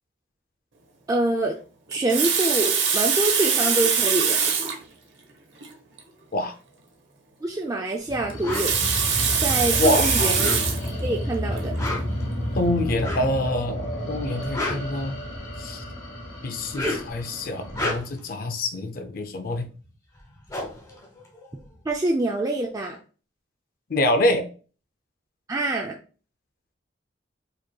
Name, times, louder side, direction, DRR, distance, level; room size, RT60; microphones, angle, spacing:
voice 1, 1.1-1.6 1.9-4.4 7.4-8.7 9.4-10.6 11.0-11.7 21.9-23.0 25.5-26.0, right 2 dB, 20° right, 1 dB, 0.3 m, -25 dB
Water tap faucet, 1.9-4.8 5.6-5.7 6.0-6.1 8.3-10.9 11.6-11.8, right 6 dB, 70° right, 0.8 m, -23 dB
sound 1, 8.1-17.8, equal, 90° left, 1.6 m, -31 dB
sound 2, 8.4-8.7 10.2-10.9 11.6-12.2 13.0-13.4 14.3-15.5 16.6-17.2 17.6-18.3 19.8-19.9 20.2-21.9, left 2 dB, 20° left, 1.1 m, -31 dB
voice 2, 9.8-10.4 12.6-15.2 15.6-15.8 16.4-19.7 23.9-24.5, left 1 dB, 50° left, 7 dB, 0.5 m, -26 dB
4.9 x 2.9 x 2.2 m, 0.37 s
head